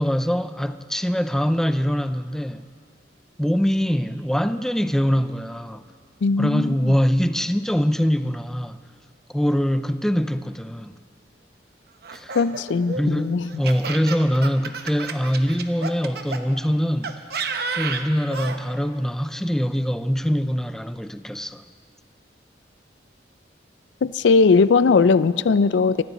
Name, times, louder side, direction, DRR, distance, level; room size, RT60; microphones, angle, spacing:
voice 1, 0.0-2.6 3.4-5.8 6.4-8.8 9.3-10.9 12.1-12.4 12.9-17.1 17.7-21.6, equal, 5° left, 0.4 m, -23 dB
voice 2, 6.2-7.0 12.3-13.5 24.0-26.0, left 4 dB, 85° left, 0.4 m, -19 dB
Laughter, 12.0-16.4 17.0-18.6, right 5 dB, 60° right, 0.9 m, -31 dB
24.5 x 14.0 x 4.2 m
head